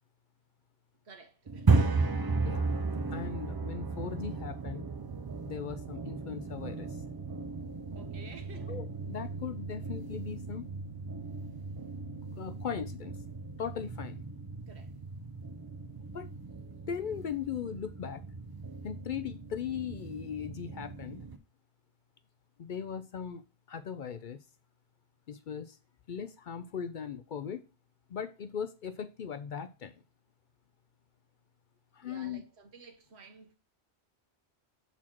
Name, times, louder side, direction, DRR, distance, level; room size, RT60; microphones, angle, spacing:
voice 1, 1.0-2.2 7.9-8.8 14.7-14.9 32.0-33.6, right 4 dB, 80° right, 1.3 m, -53 dB
sound 1, 1.5-21.4, right 4 dB, 35° right, 0.3 m, -35 dB
voice 2, 2.4-2.7 3.1-4.8 5.5-6.9 8.7-10.7 12.4-13.1 13.6-14.2 16.1-16.3 16.9-18.2 18.8-21.2 22.6-23.4 23.7-24.4 25.3-25.8 26.1-27.7 28.1-30.0 31.9-32.4, left 7 dB, 60° left, 0.6 m, -38 dB
7.3 x 4.2 x 4.5 m
omnidirectional pair, 1.1 m